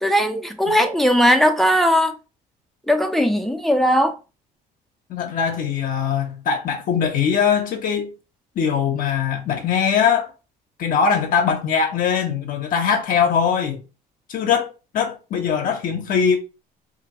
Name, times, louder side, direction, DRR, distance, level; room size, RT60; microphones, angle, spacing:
voice 1, 0.0-2.2 2.9-4.1, equal, ahead, 0.4 m, -18 dB
voice 2, 5.1-8.1 8.6-10.3 10.8-13.8 14.3-16.4, left 7 dB, 55° left, 0.6 m, -21 dB
2.9 x 2.5 x 2.8 m
cardioid pair, 110°, 17 cm